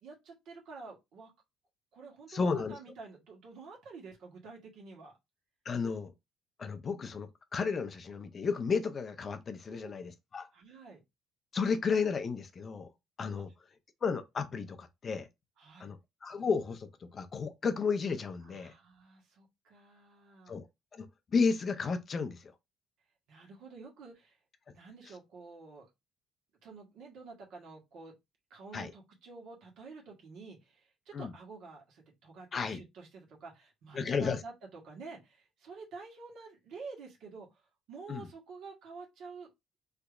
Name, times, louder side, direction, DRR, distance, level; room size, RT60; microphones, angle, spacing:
voice 1, 0.0-1.3 1.9-5.1 9.7-9.9 10.5-11.0 15.6-15.9 18.4-20.6 23.3-24.4 24.7-25.9 26.6-28.1 28.5-37.5 37.9-39.5, right 4 dB, 70° right, 1.4 m, -49 dB
voice 2, 2.3-2.8 5.7-6.1 6.6-10.5 11.5-12.9 13.2-13.5 14.0-15.3 15.8-18.7 20.5-20.7 20.9-21.1 21.3-22.5 28.7-28.9 31.1-31.3 32.5-32.8 33.9-34.4 38.1-38.3, left 5 dB, 35° left, 0.5 m, -33 dB
3.4 x 2.8 x 2.4 m
cardioid pair, 115°, 0 cm